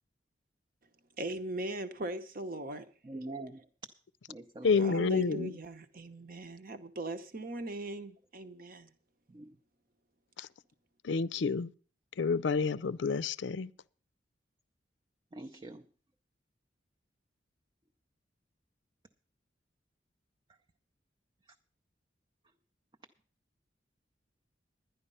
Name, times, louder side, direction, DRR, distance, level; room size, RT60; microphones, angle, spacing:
voice 1, 1.2-2.9 4.8-8.9, right 1 dB, 55° right, 1.0 m, -39 dB
voice 2, 3.0-3.6 4.3-4.9 9.3-9.5 15.3-15.8, right 2 dB, 25° right, 0.5 m, -44 dB
voice 3, 4.6-5.5 10.4-10.5 11.0-11.7 12.2-13.7, left 5 dB, 80° left, 0.5 m, -29 dB
11.5 x 10.5 x 5.5 m
head